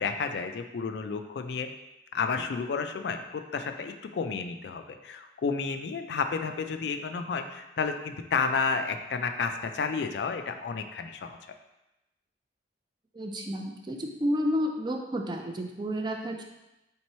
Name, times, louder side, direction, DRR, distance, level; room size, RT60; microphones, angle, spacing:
voice 1, 0.0-1.7 2.1-11.4, left 5 dB, 60° left, 7 dB, 0.3 m, -31 dB
voice 2, 13.1-16.4, equal, 25° right, 3 dB, 0.3 m, -31 dB
3.6 x 3.0 x 4.2 m, 0.94 s
head